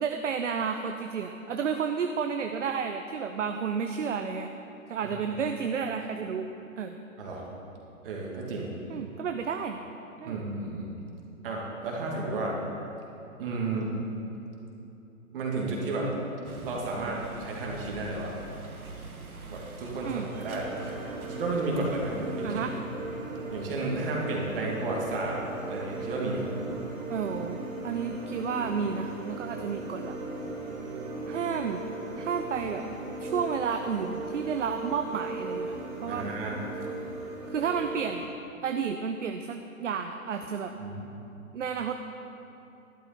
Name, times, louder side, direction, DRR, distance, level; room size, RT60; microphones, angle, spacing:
voice 1, 0.0-4.5 4.9-6.5 6.8-7.0 8.9-9.8 10.2-10.4 20.0-20.3 22.4-22.7 27.1-27.6 27.8-30.2 31.3-31.8 32.2-32.8 33.2-35.7 36.0-36.3 37.5-38.3 38.6-40.7 41.5-41.9, right 6 dB, 60° right, 6 dB, 0.7 m, -31 dB
voice 2, 8.0-8.7 10.2-10.9 11.4-12.6 13.4-13.9 15.3-16.1 16.6-18.3 19.5-20.9 21.3-22.6 23.5-25.4 25.7-26.4 36.1-36.6 40.8-41.0, right 2 dB, 40° right, -2 dB, 2.6 m, -32 dB
sound 1, 16.4-22.8, right 2 dB, 80° right, 1.6 m, -45 dB
sound 2, 20.3-38.3, right 2 dB, 10° right, 0.7 m, -37 dB
12.0 x 11.5 x 4.4 m, 2.9 s
figure-of-eight pair, 130°, 42 cm